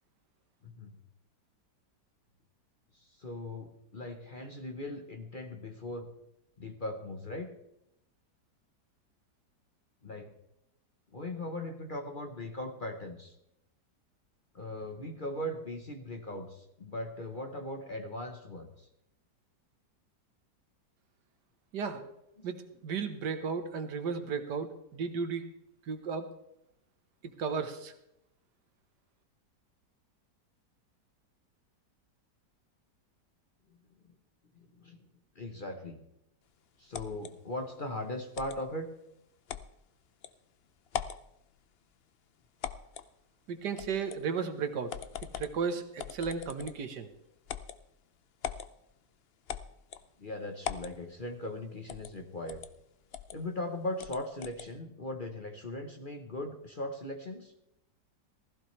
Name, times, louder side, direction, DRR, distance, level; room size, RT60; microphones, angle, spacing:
voice 1, 3.0-6.1 6.6-7.5 10.0-10.3 11.1-13.3 14.5-18.9 34.5-35.0 35.3-36.0 36.8-38.9 50.2-52.6 53.3-57.5, left 1 dB, 35° left, 5 dB, 1.1 m, -39 dB
voice 2, 22.8-25.4 25.9-26.3 27.4-27.9 43.5-44.9 45.4-47.1, right 5 dB, 75° right, 9 dB, 1.7 m, -34 dB
sound 1, 36.9-37.3 38.3-38.6 39.5-39.7 40.2-40.3 40.9-41.2 42.6-43.1 43.8-44.2 44.9-45.6 46.0-46.9 47.5-47.8 48.4-48.7 49.5-50.1 50.6-50.9 51.9-52.1 52.5-52.7 53.1-53.4 54.0-54.7, left 8 dB, 80° left, 0.5 m, -40 dB
15.5 x 15.0 x 3.3 m, 0.81 s
omnidirectional pair, 1.9 m